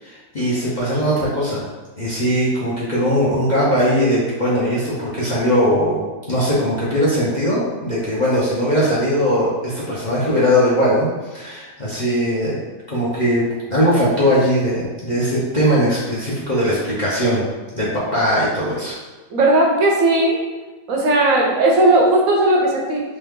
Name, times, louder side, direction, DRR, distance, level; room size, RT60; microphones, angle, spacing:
voice 1, 0.0-1.7 2.0-6.0 6.3-12.6 12.9-13.4 13.7-17.4 17.7-19.0, equal, 40° left, -8 dB, 0.8 m, -19 dB
voice 2, 19.3-20.4 20.9-23.0, right 2 dB, 70° right, 0 dB, 1.0 m, -16 dB
3.3 x 3.2 x 3.6 m, 1.2 s
omnidirectional pair, 1.6 m